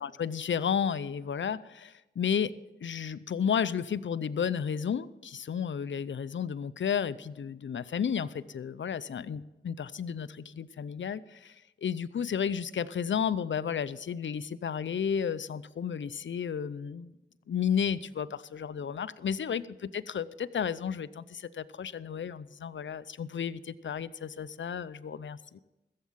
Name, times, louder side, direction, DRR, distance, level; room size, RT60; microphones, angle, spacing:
voice 1, 0.0-2.5 2.8-11.6 11.8-17.1 17.5-19.7 19.9-25.6, left 7 dB, 65° left, 15 dB, 0.6 m, -32 dB
15.0 x 7.5 x 7.3 m, 1.0 s
cardioid pair, 45°, 21 cm